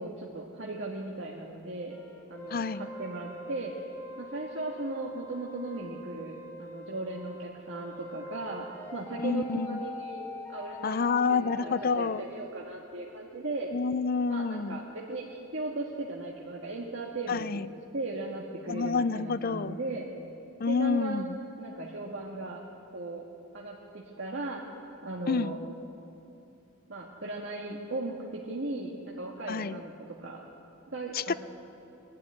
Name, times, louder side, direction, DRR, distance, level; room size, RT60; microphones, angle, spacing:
voice 1, 0.0-2.0 2.3-3.7 4.2-8.7 8.9-13.7 14.3-17.5 17.9-20.0 20.7-22.6 22.9-23.2 23.5-24.6 25.0-25.6 26.9-29.9 30.2-30.4 30.9-31.3, right 2 dB, 65° right, -3 dB, 1.8 m, -37 dB
sound 1, 1.9-12.5, left 2 dB, 10° left, 1.6 m, -44 dB
voice 2, 2.5-2.9 9.2-9.8 10.8-12.2 13.7-14.8 17.3-17.7 18.7-19.8 20.6-21.4 25.3-25.6 29.5-29.8 31.1-31.3, left 4 dB, 45° left, 15 dB, 0.5 m, -28 dB
22.0 x 12.5 x 9.7 m, 2.8 s
head